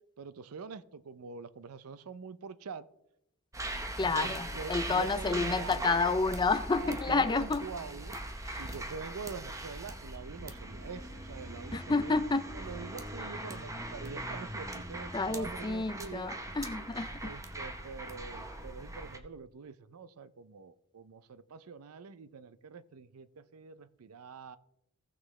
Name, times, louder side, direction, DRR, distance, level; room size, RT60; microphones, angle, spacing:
voice 1, 0.2-2.9 4.0-6.1 6.8-8.2 8.6-12.2 12.5-16.4 17.2-24.6, right 5 dB, 90° right, 16 dB, 0.5 m, -45 dB
sound 1, 3.5-19.2, right 1 dB, 15° right, 0.8 m, -40 dB
voice 2, 4.0-7.6 8.4-8.6 11.7-12.4 15.1-17.1, left 3 dB, 20° left, 12 dB, 0.5 m, -30 dB
16.5 x 6.2 x 3.2 m, 0.83 s
head